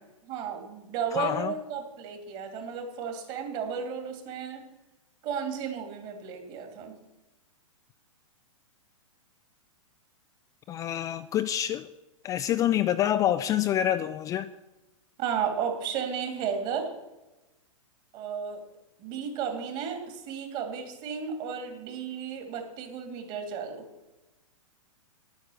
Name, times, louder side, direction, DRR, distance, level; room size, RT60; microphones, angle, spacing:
voice 1, 0.3-4.6 5.2-7.0 15.2-16.9 18.1-18.6 19.0-23.9, right 7 dB, 40° right, 2.7 m, -33 dB
voice 2, 1.1-1.5 10.7-11.9 12.2-14.5, left 11 dB, 20° left, 0.3 m, -27 dB
10.5 x 9.1 x 6.4 m
hypercardioid pair, 115°, 17 cm